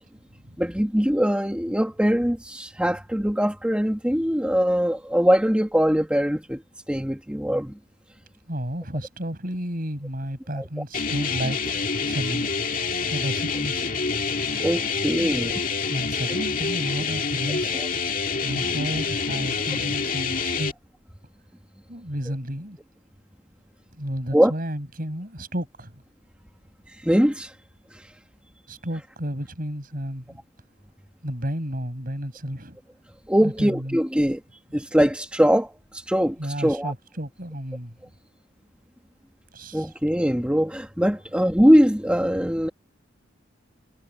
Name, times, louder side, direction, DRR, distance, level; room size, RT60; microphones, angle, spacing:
voice 1, 0.6-6.6 6.9-7.7 10.5-10.6 14.6-15.6 17.7-17.9 24.3-24.5 26.9-27.5 27.9-28.1 33.3-34.4 34.7-36.9 39.7-42.7, equal, 5° right, 1.7 m, -22 dB
voice 2, 8.5-11.6 12.0-12.5 13.1-13.9 15.2-15.4 15.9-17.8 18.4-20.7 21.9-22.8 23.9-26.0 28.7-30.4 31.2-32.8 33.4-34.0 36.4-38.0 39.5-39.9, equal, 45° right, 6.5 m, -32 dB
sound 1, 10.9-20.7, left 5 dB, 45° left, 2.0 m, -27 dB
head